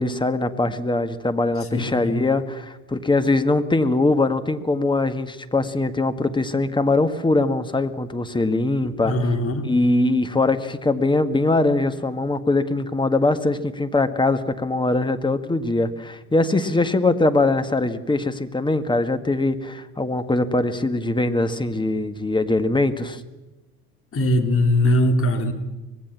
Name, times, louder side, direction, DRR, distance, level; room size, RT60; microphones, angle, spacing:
voice 1, 0.0-9.1 9.6-23.2, left 2 dB, 10° left, 10 dB, 1.8 m, -22 dB
voice 2, 1.7-2.2 9.0-9.7 24.1-25.5, left 1 dB, 30° left, 5 dB, 3.6 m, -20 dB
24.5 x 19.5 x 7.4 m, 1.1 s
figure-of-eight pair, 75°, 44 cm